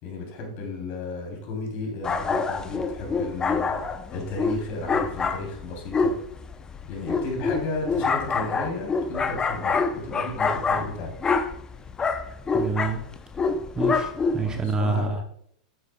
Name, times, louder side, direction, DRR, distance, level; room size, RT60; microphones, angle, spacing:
voice 1, 0.0-3.9 4.1-6.1 6.9-11.1 14.5-15.2, left 2 dB, 45° left, 0 dB, 3.2 m, -34 dB
sound 1, 2.0-14.6, left 4 dB, 20° left, 0.6 m, -26 dB
voice 2, 12.5-13.0 13.8-15.2, right 3 dB, 20° right, 5 dB, 0.7 m, -27 dB
8.9 x 8.2 x 2.2 m, 0.67 s
hypercardioid pair, 120°, 4 cm